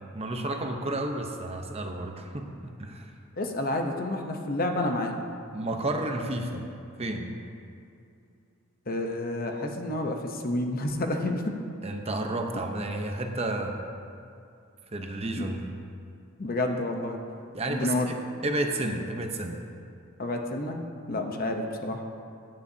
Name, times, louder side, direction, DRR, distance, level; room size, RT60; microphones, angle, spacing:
voice 1, 0.1-3.1 5.5-6.7 7.0-7.3 11.8-13.8 14.9-15.6 17.5-18.2 18.4-19.6, right 2 dB, 30° right, 3 dB, 0.8 m, -31 dB
voice 2, 3.4-5.1 8.9-11.5 15.4-15.5 16.4-17.2 17.7-18.1 20.2-22.0, left 1 dB, 45° left, 3 dB, 0.8 m, -29 dB
16.5 x 9.8 x 2.8 m, 2.5 s
head